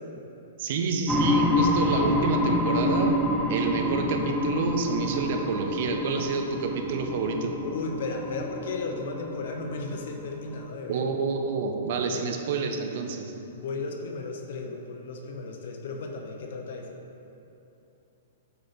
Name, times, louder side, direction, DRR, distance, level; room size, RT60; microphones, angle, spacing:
voice 1, 0.6-3.2 3.5-7.6 10.9-13.3, right 4 dB, 45° right, 4 dB, 0.6 m, -28 dB
sound 1, 1.1-10.6, left 1 dB, ahead, 0.3 m, -28 dB
voice 2, 7.6-11.1 12.1-12.3 13.5-16.9, left 3 dB, 60° left, 2 dB, 0.7 m, -35 dB
7.7 x 3.3 x 4.1 m, 2.9 s
hypercardioid pair, 165°, 0 cm